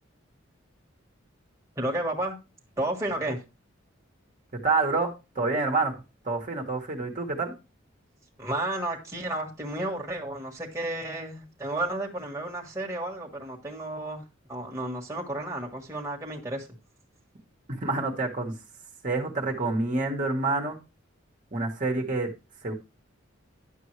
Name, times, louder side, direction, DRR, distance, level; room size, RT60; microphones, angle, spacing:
voice 1, 1.8-2.4 2.8-3.4 8.4-16.7, right 1 dB, 15° right, -1 dB, 1.5 m, -32 dB
voice 2, 4.6-6.0 6.2-7.5 17.7-18.5 19.0-20.8 21.5-22.3 22.6-22.7, right 3 dB, 40° right, 1 dB, 1.4 m, -27 dB
10.5 x 6.9 x 3.2 m, 0.29 s
head